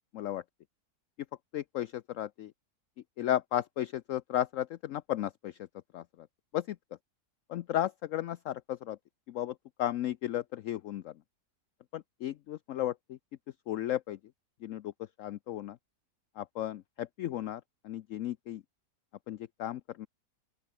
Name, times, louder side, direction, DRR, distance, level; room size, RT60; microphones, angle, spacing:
voice 1, 1.5-1.9 2.2-2.5 3.2-5.5 5.9-6.0 6.5-6.6 7.5-9.0 9.3-9.5 9.8-11.1 11.9-12.9 13.7-14.2 14.6-14.8 15.2-15.7 16.4-17.6 17.9-18.6 19.3-20.1, left 12 dB, 65° left, 0.9 m, -34 dB
open air
omnidirectional pair, 1.7 m